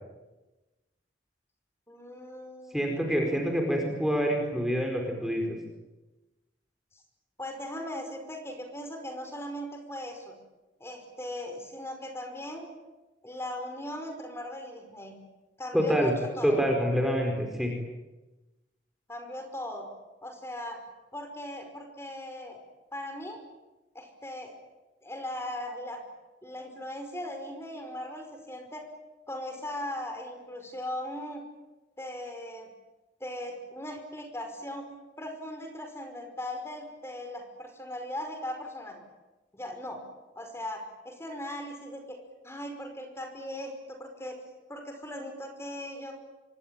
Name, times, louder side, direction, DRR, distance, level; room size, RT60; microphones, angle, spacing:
voice 1, 1.9-2.8 7.4-10.3 10.8-12.7 13.2-15.2 15.6-16.6 19.1-19.9 20.2-20.8 21.1-22.6 22.9-23.4 23.9-24.6 25.0-26.0 26.4-28.8 29.3-31.4 32.0-32.7 33.2-34.9 35.2-39.0 39.5-40.0 40.3-42.2 42.4-44.4 44.7-46.1, left 1 dB, 15° left, 5 dB, 5.3 m, -38 dB
voice 2, 2.7-5.4 15.7-16.1 16.4-17.7, equal, ahead, 1 dB, 4.6 m, -26 dB
26.5 x 23.5 x 9.1 m, 1.1 s
head